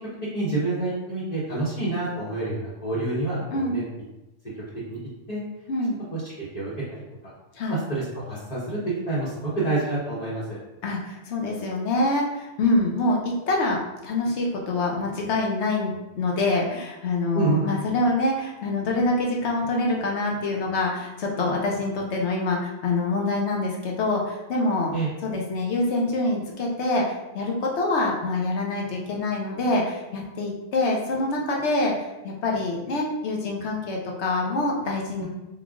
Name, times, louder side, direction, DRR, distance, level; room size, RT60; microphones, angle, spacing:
voice 1, 0.3-3.8 4.9-5.0 5.3-5.4 6.1-6.7 7.7-8.8 9.1-10.4 17.3-17.7 24.9-25.1 35.2-35.3, right 2 dB, 40° left, -10 dB, 1.1 m, -27 dB
voice 2, 3.5-3.8 5.7-6.0 7.5-7.8 10.8-25.0 25.2-35.3, left 2 dB, 80° left, -1 dB, 1.1 m, -25 dB
3.8 x 2.4 x 3.5 m, 0.98 s
omnidirectional pair, 1.1 m